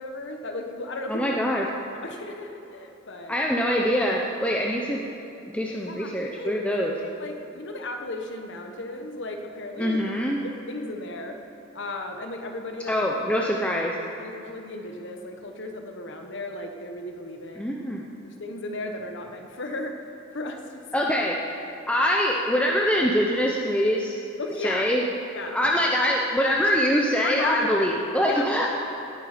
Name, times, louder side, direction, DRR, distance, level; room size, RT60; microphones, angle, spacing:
voice 1, 0.0-1.3 1.9-3.4 5.9-6.5 7.0-10.2 10.4-11.4 11.7-13.1 13.3-13.5 14.2-17.7 18.4-19.9 20.3-20.6 20.9-21.1 24.4-24.9 25.3-25.6 27.2-27.9 28.2-28.5, left 2 dB, 60° left, 4 dB, 1.2 m, -35 dB
voice 2, 1.1-1.6 3.3-5.0 5.5-6.9 9.8-10.4 12.9-13.9 17.6-18.1 20.9-21.4 21.9-24.2 24.6-25.0 25.5-28.7, equal, 5° left, -1 dB, 0.7 m, -24 dB
18.0 x 8.6 x 5.1 m, 2.8 s
head